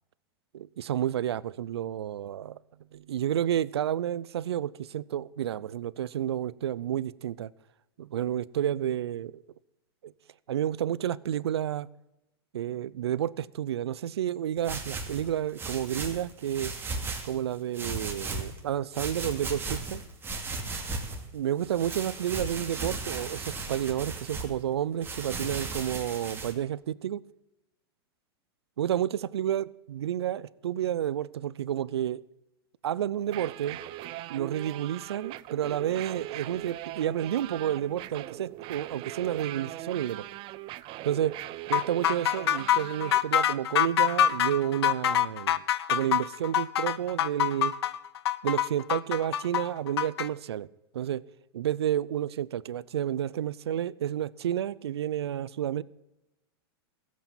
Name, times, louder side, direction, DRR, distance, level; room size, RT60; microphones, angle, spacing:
voice 1, 0.5-2.6 2.9-7.5 8.0-9.4 10.0-10.1 10.5-11.9 12.5-16.7 17.2-20.0 21.3-27.2 28.8-32.2 32.8-33.8 34.3-40.3 41.0-41.4 41.7-45.6 45.9-47.7 48.4-50.7 50.9-51.2 51.5-55.8, right 10 dB, 90° right, 0.6 m, -30 dB
sound 1, 14.6-17.4 17.7-18.6 18.9-21.2 21.6-24.5 25.0-26.5, right 3 dB, 15° right, 2.7 m, -36 dB
sound 2, 33.2-43.2, right 16 dB, 40° right, 0.6 m, -40 dB
sound 3, 41.7-50.3, left 11 dB, 80° left, 0.7 m, -25 dB
15.5 x 8.4 x 7.7 m
hypercardioid pair, 120°, 13 cm